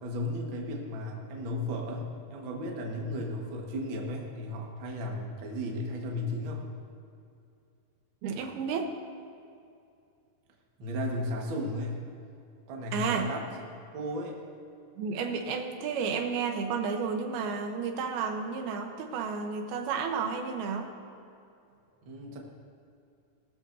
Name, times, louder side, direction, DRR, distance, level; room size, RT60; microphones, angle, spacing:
voice 1, 0.0-2.0 2.3-6.6 10.8-12.0 12.7-13.4 13.9-14.4 22.0-22.4, left 1 dB, 55° right, -1 dB, 1.4 m, -34 dB
voice 2, 8.2-8.9 12.9-13.3 15.0-20.9, right 5 dB, 85° right, 5 dB, 2.8 m, -32 dB
19.0 x 13.0 x 2.7 m, 2.5 s
omnidirectional pair, 4.4 m